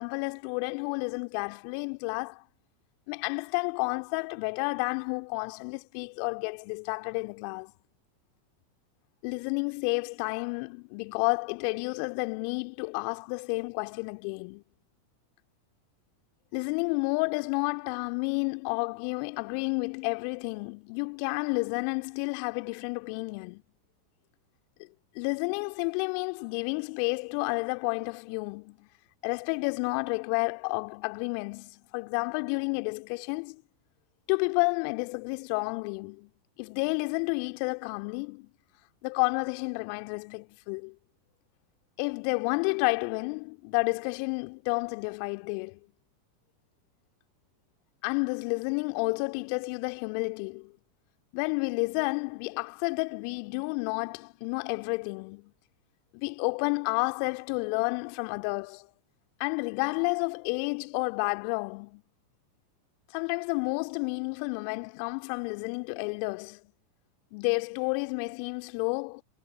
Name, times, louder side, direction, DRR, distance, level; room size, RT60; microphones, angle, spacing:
voice 1, 0.0-2.4 3.1-7.7 9.2-14.6 16.5-23.6 25.1-28.9 29.2-33.6 34.3-36.3 36.6-38.5 39.0-40.9 42.0-45.8 48.0-50.7 51.3-55.5 56.1-58.9 59.4-62.0 63.1-66.6 67.3-69.2, left 38 dB, 50° left, 2.4 m, -31 dB
figure-of-eight pair, 90°, 0 cm